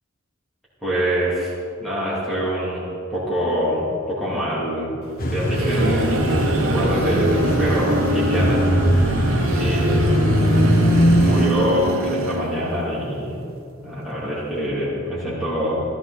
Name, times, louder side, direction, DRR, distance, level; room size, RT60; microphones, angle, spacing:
voice 1, 0.8-1.5 1.8-2.8 3.1-5.0 5.3-6.2 6.6-8.6 9.5-10.2 11.1-13.4 13.8-15.8, equal, ahead, -10 dB, 2.9 m, -24 dB
sound 1, 5.2-11.5, equal, 40° left, 1.3 m, -20 dB
sound 2, 5.2-12.9, right 2 dB, 80° right, 0.9 m, -25 dB
15.0 x 13.5 x 4.2 m, 2.4 s
head